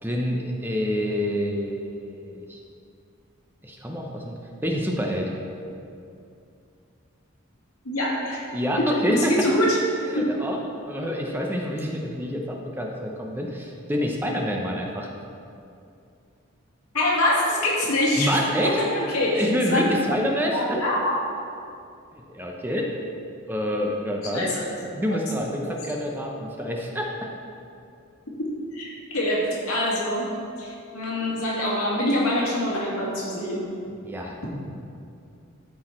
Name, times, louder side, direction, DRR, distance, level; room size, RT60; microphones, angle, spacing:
voice 1, 0.0-2.6 3.6-5.3 8.5-9.4 10.1-10.6 10.9-15.1 18.2-18.8 19.3-20.8 22.1-23.0 23.5-24.7 24.9-27.1 34.0-34.5, equal, 10° right, 0 dB, 0.7 m, -27 dB
voice 2, 7.8-8.4 9.1-9.8 10.1-10.3 16.9-18.3 18.6-19.8 20.5-21.2 24.3-24.5 25.6-25.8 28.7-30.3 30.6-33.7, left 1 dB, 85° left, -4 dB, 2.1 m, -24 dB
13.0 x 4.7 x 4.3 m, 2.5 s
head